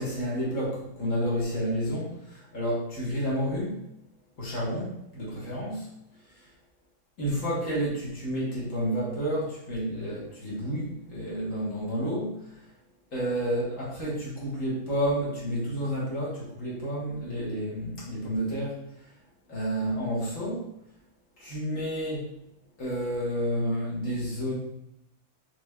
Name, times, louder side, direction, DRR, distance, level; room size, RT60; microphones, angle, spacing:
voice 1, 0.0-2.1 2.5-3.8 4.4-5.9 7.2-12.4 13.1-18.8 19.5-20.7 21.4-22.3 22.8-24.6, equal, 85° left, -7 dB, 1.9 m, -30 dB
6.1 x 3.2 x 2.3 m, 0.79 s
omnidirectional pair, 1.3 m